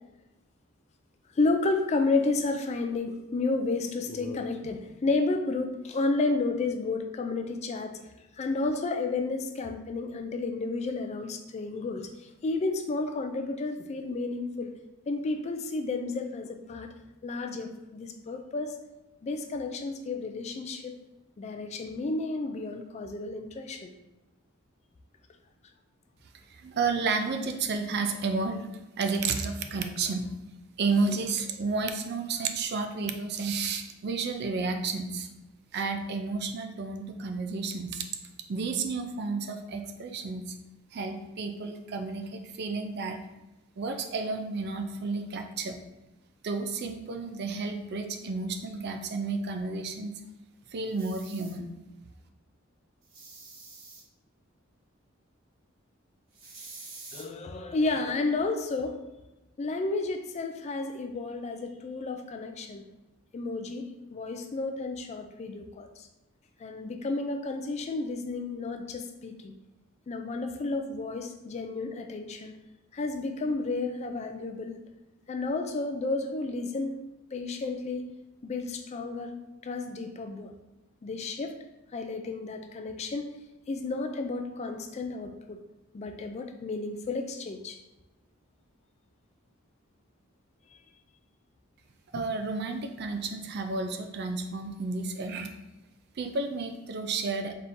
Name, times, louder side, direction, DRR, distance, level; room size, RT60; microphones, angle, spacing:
voice 1, 1.4-7.9 8.4-12.1 12.4-14.7 15.1-16.9 17.2-18.7 19.2-20.9 21.4-23.9 57.1-59.0 59.6-62.9 63.3-66.1 66.6-69.5 70.1-72.5 72.9-74.8 75.3-77.0 77.3-78.0 78.4-79.3 79.6-80.5 81.0-81.5 81.9-83.3 83.7-85.6 85.9-87.8 92.1-92.2, left 3 dB, 30° left, 5 dB, 0.3 m, -31 dB
voice 2, 26.5-28.7 29.0-30.3 30.8-35.3 35.7-38.0 38.5-40.5 40.9-43.2 43.8-45.8 46.4-50.1 50.7-51.7 92.1-95.5 96.2-97.5, right 4 dB, 50° right, 5 dB, 0.4 m, -31 dB
sound 1, 50.9-51.5 53.0-54.0 56.3-57.2, right 3 dB, 70° right, 1.1 m, -47 dB
4.2 x 3.5 x 2.6 m, 1.0 s
head